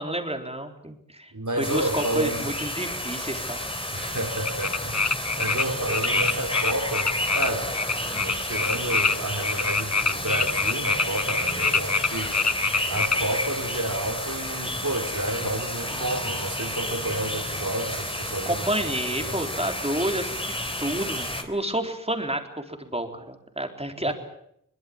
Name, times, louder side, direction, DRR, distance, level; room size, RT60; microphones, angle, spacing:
voice 1, 0.0-1.3 1.6-3.7 18.5-24.1, right 1 dB, 20° right, 4 dB, 3.9 m, -30 dB
voice 2, 1.3-2.5 3.9-5.1 5.4-7.7 8.0-12.3 12.9-18.7 19.1-19.4 24.1-24.2, right 1 dB, 65° right, 6 dB, 3.6 m, -31 dB
sound 1, 1.6-21.4, left 1 dB, 15° left, 3.6 m, -31 dB
sound 2, 4.5-5.6 5.9-13.2, left 4 dB, 55° left, 1.1 m, -25 dB
22.5 x 22.0 x 8.7 m, 0.73 s
wide cardioid pair, 45°, 32 cm